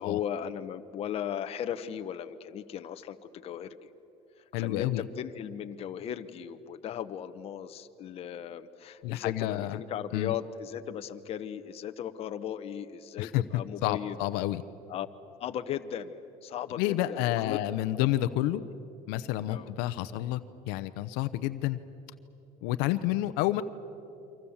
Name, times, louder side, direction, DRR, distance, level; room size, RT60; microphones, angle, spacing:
voice 1, 0.0-3.9 4.6-14.2 14.9-15.1 15.4-17.6 17.9-18.1 18.6-18.8 19.5-19.7, left 9 dB, 40° left, 8 dB, 1.0 m, -37 dB
voice 2, 4.5-5.0 9.0-9.8 10.1-10.3 13.2-14.6 16.8-18.6 19.1-20.4 20.7-21.8 22.6-23.6, left 15 dB, 75° left, 12 dB, 0.9 m, -29 dB
29.0 x 24.5 x 7.3 m, 2.9 s
cardioid pair, 145°, 16 cm